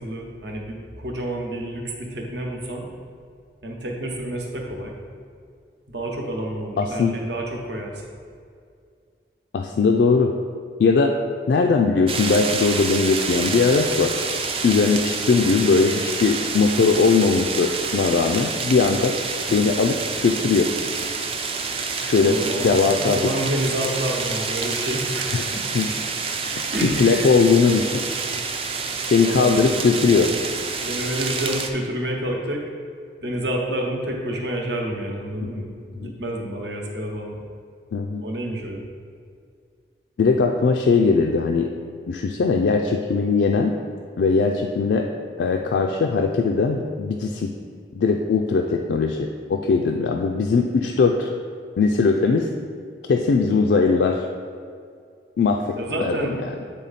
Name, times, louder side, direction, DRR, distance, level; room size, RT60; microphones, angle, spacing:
voice 1, 0.0-2.9 3.6-4.9 5.9-8.0 22.1-25.7 26.7-27.6 29.2-29.7 30.8-32.6 33.2-37.4 38.2-38.9 55.8-56.3, right 1 dB, 75° right, 0 dB, 1.0 m, -29 dB
voice 2, 6.8-7.2 9.5-10.3 10.8-11.1 11.5-14.2 14.6-19.1 19.5-20.0 20.2-20.7 22.0-23.3 25.3-25.5 25.7-25.9 26.5-28.0 29.0-30.3 35.4-35.5 36.0-36.1 37.9-38.2 40.2-41.7 42.1-43.7 44.2-45.1 45.4-47.5 48.0-51.3 51.8-52.5 53.1-54.2 55.4-56.3, left 4 dB, 75° left, 2 dB, 0.3 m, -20 dB
sound 1, 12.1-31.7, right 5 dB, 30° right, 0.4 m, -28 dB
8.4 x 3.4 x 4.1 m, 2.2 s
head